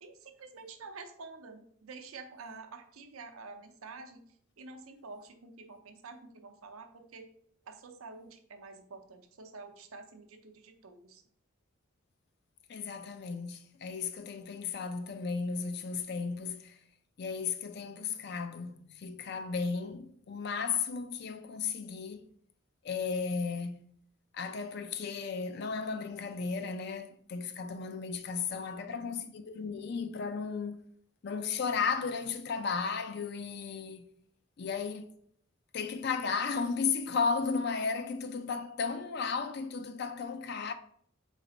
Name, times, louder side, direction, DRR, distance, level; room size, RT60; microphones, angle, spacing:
voice 1, 0.0-4.2 4.6-7.3 7.7-11.2 28.5-29.1, right 4 dB, 90° right, 0.6 m, -48 dB
voice 2, 12.7-16.8 17.2-22.2 22.8-23.9 24.3-30.8 31.2-34.0 34.6-35.1 35.7-40.7, left 5 dB, 50° left, 0.4 m, -34 dB
4.1 x 3.3 x 3.8 m
head